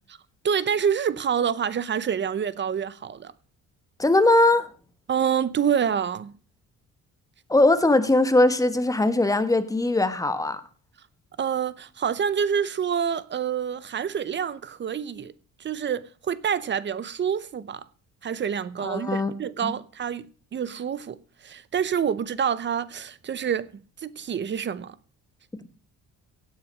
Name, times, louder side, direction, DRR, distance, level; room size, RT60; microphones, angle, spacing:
voice 1, 0.4-3.3 5.1-6.3 11.4-15.3 15.6-17.8 18.2-20.3 20.5-21.2 21.4-23.7 24.0-25.0, right 8 dB, 35° right, 0.8 m, -27 dB
voice 2, 4.0-4.7 7.5-10.6 18.8-19.3 19.6-19.7, left 2 dB, 10° left, 1.2 m, -20 dB
16.5 x 8.4 x 6.2 m
cardioid pair, 155°, 32 cm